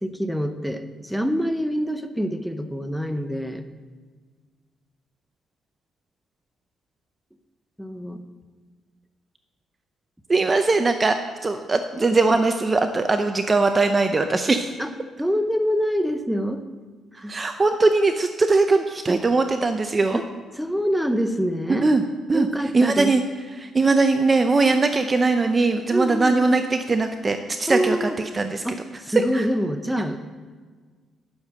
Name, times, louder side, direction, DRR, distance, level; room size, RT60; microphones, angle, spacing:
voice 1, 0.0-3.7 7.8-8.2 14.8-14.9 15.2-16.6 17.1-17.4 20.1-20.2 20.6-21.9 22.3-23.1 25.9-26.6 27.7-28.2 28.6-30.2, equal, ahead, 8 dB, 0.8 m, -25 dB
voice 2, 10.3-11.2 11.4-14.7 17.2-20.2 21.8-22.0 22.3-22.5 22.7-23.2 23.6-28.1 28.3-28.6 29.2-29.5, right 3 dB, 30° right, 7 dB, 0.6 m, -20 dB
10.5 x 6.8 x 6.3 m, 1.5 s
cardioid pair, 90°, 0 cm